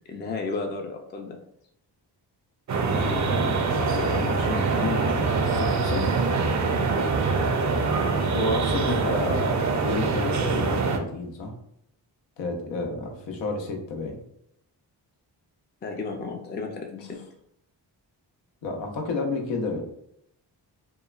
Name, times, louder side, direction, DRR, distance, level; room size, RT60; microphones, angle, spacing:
voice 1, 0.1-1.4 15.8-17.2, left 3 dB, 25° left, 2 dB, 0.4 m, -33 dB
sound 1, 2.7-11.0, right 4 dB, 45° right, 0.5 m, -24 dB
voice 2, 2.9-6.4 8.3-11.5 12.4-14.2 18.6-19.8, left 3 dB, 85° left, 2 dB, 0.7 m, -31 dB
3.0 x 2.2 x 2.3 m, 0.74 s
cardioid pair, 70°, 43 cm